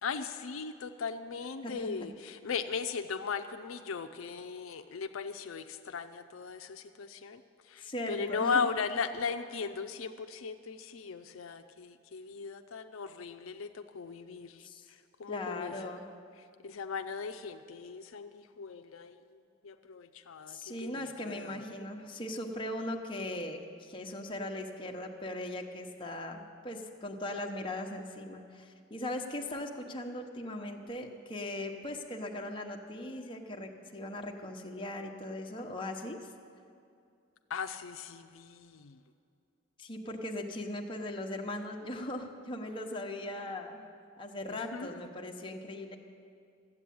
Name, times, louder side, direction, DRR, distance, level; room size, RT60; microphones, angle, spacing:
voice 1, 0.0-21.7 37.5-39.0 44.5-45.0, left 5 dB, 80° left, 8 dB, 0.5 m, -38 dB
voice 2, 7.8-8.7 14.6-14.8 15.3-16.1 20.5-36.2 39.8-43.8 44.2-46.0, left 1 dB, 25° left, 1 dB, 0.9 m, -39 dB
13.5 x 8.3 x 8.5 m, 2.4 s
head